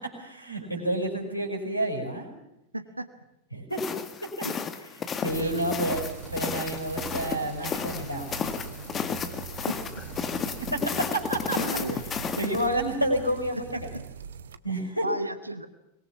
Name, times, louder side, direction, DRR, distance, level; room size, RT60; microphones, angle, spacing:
voice 1, 0.0-2.3 3.5-3.8 4.2-4.5 5.2-6.0 6.3-8.3 10.6-11.6 11.9-12.1 12.4-13.9 14.6-15.1, right 1 dB, 90° left, 5 dB, 5.9 m, -29 dB
voice 2, 2.7-3.1 4.4-4.6 5.3-5.7 9.3-9.4 9.7-9.8 11.5-12.0 12.4-12.5 13.5-14.0 15.0-15.7, right 1 dB, 85° right, 12 dB, 1.4 m, -33 dB
sound 1, 3.7-12.7, left 6 dB, 25° left, 2.1 m, -33 dB
sound 2, 5.3-14.6, right 7 dB, 65° right, 1.3 m, -41 dB
24.0 x 22.5 x 7.2 m, 0.86 s
figure-of-eight pair, 90°, 0 cm